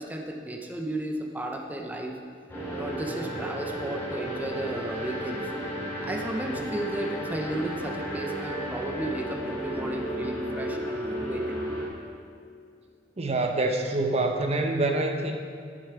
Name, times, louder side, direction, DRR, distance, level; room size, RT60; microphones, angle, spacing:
voice 1, 0.0-2.1 2.7-5.5 6.0-11.6, right 1 dB, 10° right, 1 dB, 0.8 m, -34 dB
sound 1, 2.5-11.9, right 1 dB, 15° left, 3.1 m, -33 dB
voice 2, 13.2-15.4, right 2 dB, 35° right, 4 dB, 0.8 m, -26 dB
11.0 x 10.5 x 4.6 m, 2.3 s
head